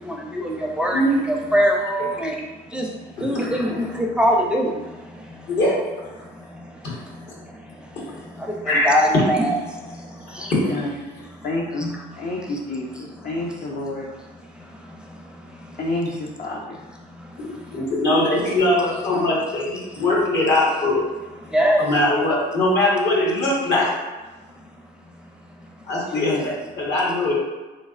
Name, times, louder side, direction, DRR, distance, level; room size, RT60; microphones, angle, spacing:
voice 1, 0.1-1.0 1.3-2.3 2.7-2.8 3.2-3.7 4.2-4.7 8.7-9.5 11.8-11.9 21.5-21.8, equal, 5° right, 0 dB, 0.5 m, -21 dB
voice 2, 5.5-6.1 6.8-7.0 8.6-8.9 10.4-10.7 17.4-21.0 21.8-24.0 25.9-27.3, left 1 dB, 65° left, -4 dB, 1.4 m, -21 dB
voice 3, 11.4-14.1 15.8-16.8 26.1-26.5, left 2 dB, 50° left, -2 dB, 0.6 m, -28 dB
3.6 x 3.2 x 2.5 m, 1.2 s
supercardioid pair, 70°, 19 cm